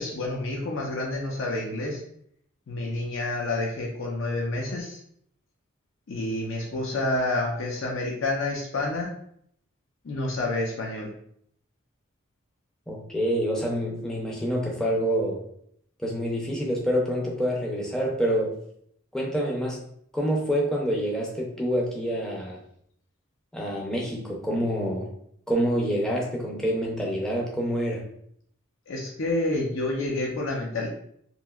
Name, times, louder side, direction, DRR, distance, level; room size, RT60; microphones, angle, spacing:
voice 1, 0.0-2.0 2.7-5.0 6.1-9.1 10.0-11.1 28.9-30.9, left 2 dB, 70° left, -1 dB, 0.5 m, -29 dB
voice 2, 12.9-15.4 16.0-18.5 19.1-19.8 20.1-22.6 23.5-25.1 25.5-28.1, equal, 5° left, -2 dB, 0.5 m, -27 dB
2.9 x 2.7 x 2.3 m, 0.68 s
head